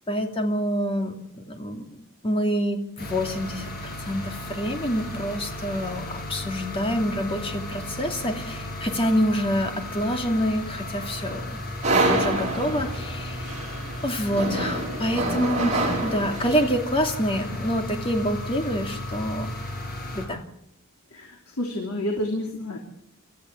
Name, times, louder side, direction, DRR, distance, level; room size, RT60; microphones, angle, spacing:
voice 1, 0.1-1.9 2.2-11.6 11.9-13.5 14.0-19.5 20.1-20.4, equal, 25° left, 4 dB, 2.6 m, -27 dB
sound 1, 3.0-20.3, left 1 dB, 45° left, 6.9 m, -35 dB
sound 2, 11.8-16.8, right 2 dB, 30° right, 5.9 m, -27 dB
voice 2, 21.1-22.8, left 1 dB, 75° left, 2 dB, 3.2 m, -29 dB
27.0 x 14.0 x 8.5 m, 0.76 s
head